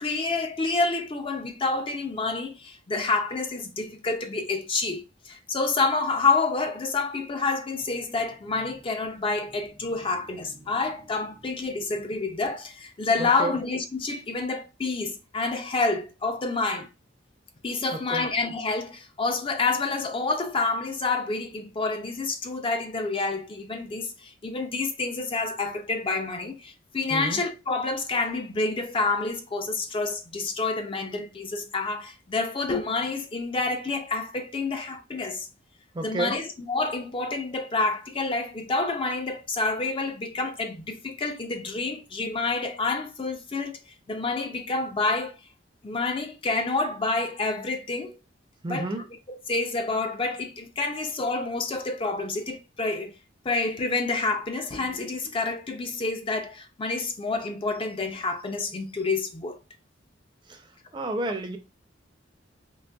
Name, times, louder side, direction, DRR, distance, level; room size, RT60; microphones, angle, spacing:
voice 1, 0.0-16.9 17.6-35.5 36.0-43.8 44.1-45.4 45.8-48.2 48.7-48.9 49.3-53.2 53.4-59.6, left 3 dB, 30° left, 0.4 m, -28 dB
voice 2, 13.2-13.5 17.9-18.3 27.1-27.4 35.9-36.4 48.6-49.0 60.5-60.7 60.9-61.6, right 2 dB, 25° right, 0.5 m, -31 dB
3.9 x 2.8 x 2.3 m
head